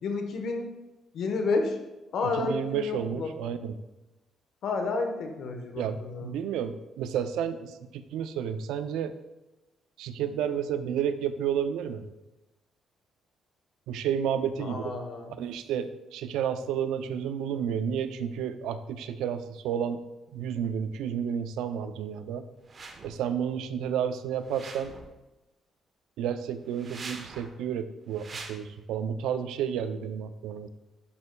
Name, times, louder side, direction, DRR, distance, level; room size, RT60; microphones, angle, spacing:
voice 1, 0.0-0.6 1.1-1.8 2.1-3.3 4.6-6.3 14.6-15.3, left 3 dB, 70° left, 4 dB, 1.0 m, -30 dB
voice 2, 2.2-3.8 5.8-9.1 10.0-12.1 13.9-14.9 15.4-20.0 20.3-22.4 23.0-24.9 26.2-30.7, right 8 dB, 90° right, 11 dB, 0.4 m, -31 dB
sound 1, 22.6-23.2 24.4-25.2 26.7-27.6 28.1-28.5, right 3 dB, 40° right, 0.9 m, -43 dB
11.0 x 5.3 x 2.2 m, 1.0 s
cardioid pair, 90°, 0 cm